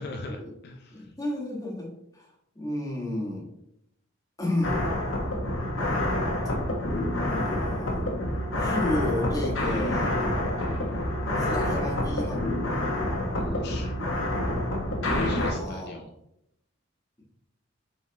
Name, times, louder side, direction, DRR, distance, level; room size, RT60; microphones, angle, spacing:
voice 1, 0.0-1.1 13.3-13.9 15.2-16.1, left 2 dB, 55° left, 3 dB, 0.5 m, -41 dB
voice 2, 0.9-2.3 2.5-3.5 4.4-4.9 7.3-8.0 8.6-10.1 11.4-12.5 15.4-16.0, left 1 dB, 20° left, -2 dB, 1.6 m, -32 dB
sound 1, 4.6-15.5, left 1 dB, 80° left, 1.4 m, -27 dB
7.3 x 4.4 x 2.9 m, 0.78 s
head